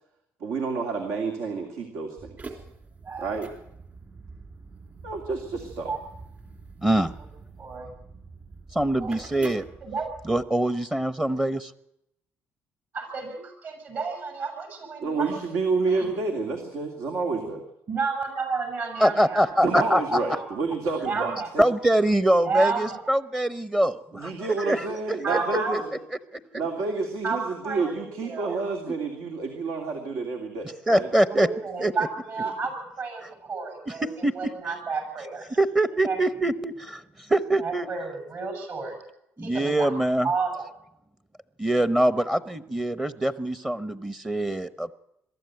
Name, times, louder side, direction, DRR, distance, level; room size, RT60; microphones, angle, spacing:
voice 1, 0.4-2.6 3.2-3.5 5.0-5.9 15.0-17.6 19.6-21.6 24.1-25.8 26.5-31.1, right 4 dB, 80° right, 3 dB, 2.7 m, -29 dB
sound 1, 2.2-10.4, right 3 dB, 35° right, 3.4 m, -45 dB
voice 2, 3.0-3.4 5.8-6.0 7.6-7.9 9.0-9.2 9.8-10.1 12.9-15.4 15.9-16.1 17.9-19.9 20.3-20.5 21.0-21.5 22.4-23.0 25.2-25.9 27.2-27.4 27.6-28.5 31.3-35.4 36.1-36.2 37.6-39.0 39.4-39.9 40.2-40.6, right 4 dB, 50° right, 5 dB, 7.7 m, -31 dB
voice 3, 6.8-7.1 8.7-9.6 10.2-11.7 19.0-20.2 21.6-24.9 25.3-25.4 28.9-29.0 30.9-31.5 31.8-31.9 33.9-34.3 35.5-37.9 39.4-40.3 41.6-44.9, right 1 dB, 15° right, 12 dB, 0.9 m, -24 dB
22.5 x 13.5 x 9.3 m, 0.80 s
cardioid pair, 95°, 5 cm